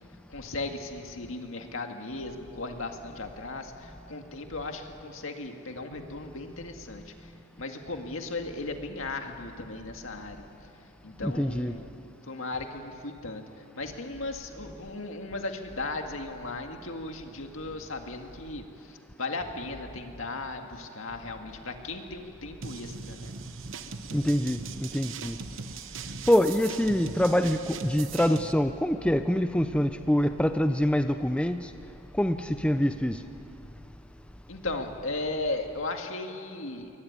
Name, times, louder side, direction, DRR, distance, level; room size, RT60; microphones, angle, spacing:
voice 1, 0.3-7.3 7.6-10.5 11.0-11.9 12.3-23.3 34.5-36.9, left 2 dB, 70° left, 4 dB, 2.1 m, -36 dB
voice 2, 11.2-11.7 24.1-25.4 26.3-31.7 32.2-33.2, equal, 5° left, 8 dB, 0.5 m, -25 dB
sound 1, 22.6-28.5, right 5 dB, 60° right, 1.0 m, -40 dB
22.5 x 20.0 x 9.6 m, 2.7 s
head